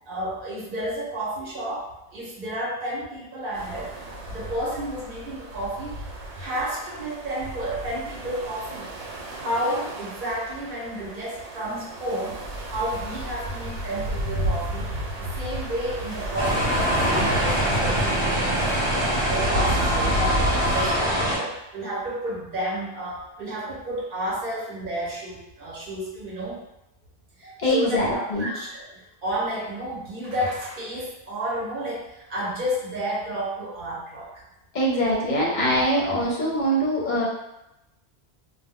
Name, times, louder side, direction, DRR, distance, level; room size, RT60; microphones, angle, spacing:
voice 1, 0.1-4.0 4.3-6.1 6.3-8.9 9.3-14.9 15.2-18.9 19.3-26.6 27.4-34.4, equal, 55° right, -5 dB, 0.8 m, -31 dB
sound 1, 3.5-20.9, right 1 dB, 80° right, 0.9 m, -33 dB
sound 2, 16.4-21.4, equal, 30° right, 0.8 m, -23 dB
voice 2, 27.4-28.5 34.7-37.3, equal, 50° left, -3 dB, 0.6 m, -23 dB
2.2 x 2.1 x 3.5 m, 0.91 s
omnidirectional pair, 1.1 m